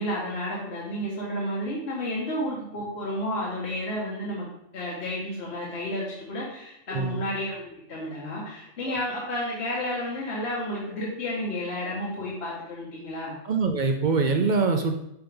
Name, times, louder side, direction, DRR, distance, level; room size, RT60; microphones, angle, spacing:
voice 1, 0.0-4.4 4.7-13.4, left 1 dB, 55° left, -6 dB, 1.5 m, -31 dB
voice 2, 6.9-7.2 8.9-9.0 13.4-15.0, right 4 dB, 60° right, 5 dB, 0.5 m, -24 dB
5.9 x 5.3 x 3.4 m, 0.81 s
omnidirectional pair, 1.4 m